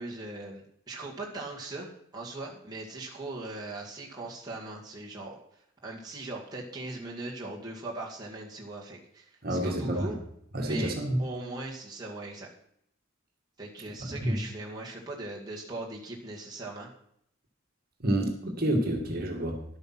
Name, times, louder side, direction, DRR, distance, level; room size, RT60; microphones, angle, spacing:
voice 1, 0.0-5.4 5.8-10.2 10.6-10.9 11.2-12.5 13.6-16.9, right 2 dB, 20° right, -3 dB, 2.1 m, -40 dB
voice 2, 9.4-10.1 10.5-11.2 14.0-14.4 18.0-19.6, right 1 dB, 45° right, 2 dB, 2.0 m, -29 dB
11.5 x 8.7 x 5.9 m, 0.70 s
head